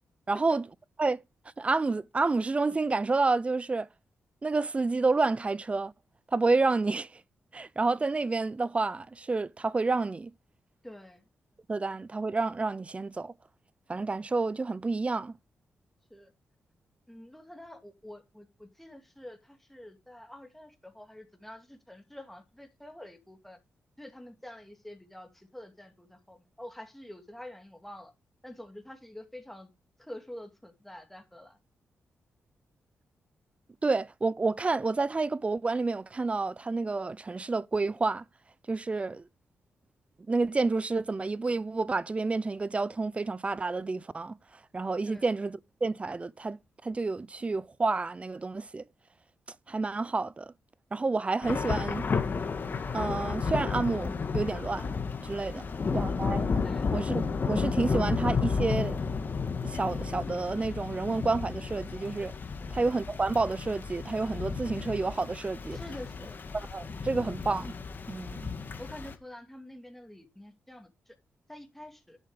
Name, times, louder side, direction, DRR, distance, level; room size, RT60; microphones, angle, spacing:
voice 1, 0.3-0.6 1.0-1.2 1.6-3.9 4.4-5.9 6.3-7.1 7.5-10.3 11.7-13.3 13.9-15.3 33.8-38.2 38.7-39.2 40.3-44.4 44.7-46.6 46.8-48.8 49.7-50.5 50.9-52.1 52.9-54.9 55.2-55.6 55.9-56.6 56.9-59.0 59.6-62.3 62.7-65.8 66.5-67.7 68.1-68.4, right 3 dB, 25° right, 0.6 m, -29 dB
voice 2, 10.8-11.3 16.1-16.3 17.1-23.6 24.0-28.1 28.4-29.7 30.0-31.6 39.0-39.1 45.0-45.2 55.5-55.6 55.9-56.0 56.6-56.9 62.6-62.8 65.7-66.4 68.8-71.1 71.5-72.2, left 1 dB, 5° left, 2.6 m, -47 dB
Thunder / Rain, 51.4-69.1, left 5 dB, 45° left, 2.0 m, -32 dB
11.0 x 7.3 x 5.0 m
cardioid pair, 90°, 5 cm